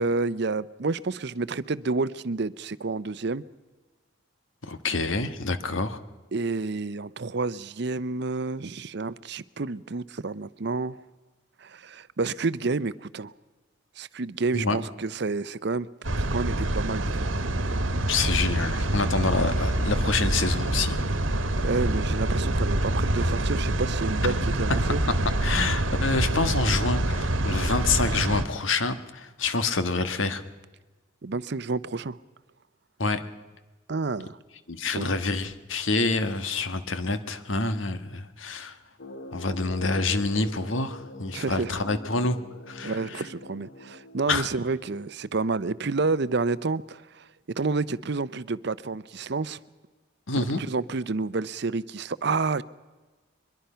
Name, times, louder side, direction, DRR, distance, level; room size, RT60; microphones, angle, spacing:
voice 1, 0.0-3.4 6.3-11.0 11.6-13.3 14.0-15.9 16.2-17.3 21.6-25.0 31.2-32.2 33.9-34.4 34.9-35.1 41.3-41.7 42.8-49.6 50.3-52.6, right 3 dB, 60° right, 16 dB, 0.7 m, -29 dB
voice 2, 4.6-6.0 14.5-14.8 18.1-21.0 24.2-24.4 25.4-30.4 33.0-33.2 34.7-38.7 39.3-42.4 42.7-43.2 44.3-44.5 50.3-50.6, left 3 dB, 85° left, 10 dB, 1.5 m, -27 dB
sound 1, 16.0-28.4, right 1 dB, 90° right, 1.4 m, -26 dB
sound 2, 39.0-44.7, left 1 dB, 55° left, 1.3 m, -44 dB
23.5 x 22.0 x 5.7 m, 1.3 s
head